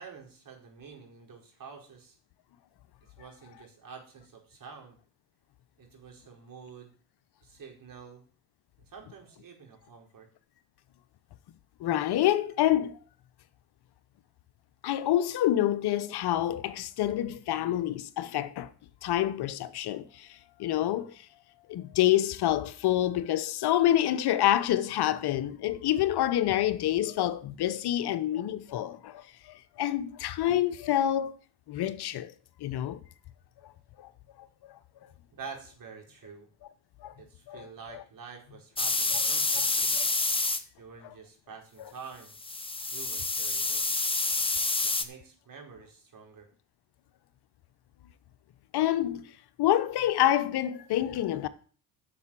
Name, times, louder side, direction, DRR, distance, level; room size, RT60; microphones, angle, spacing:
voice 1, 0.0-2.2 3.0-5.0 5.8-6.9 7.4-8.2 8.8-10.3 20.7-21.0 35.3-36.5 37.2-39.9 40.8-42.3 42.9-43.8 44.8-46.5, right 5 dB, 45° right, 4.7 m, -48 dB
voice 2, 11.8-13.0 14.8-18.7 19.0-21.3 21.7-31.4 31.7-32.3 32.6-33.0 34.0-34.1 34.4-34.5 37.0-37.1 37.5-37.7 39.1-39.2 48.7-49.3 49.6-51.5, left 12 dB, 55° left, 1.0 m, -27 dB
sound 1, 38.8-40.6 42.4-45.0, left 3 dB, 10° left, 1.4 m, -28 dB
10.5 x 7.0 x 7.5 m
hypercardioid pair, 65°, 46 cm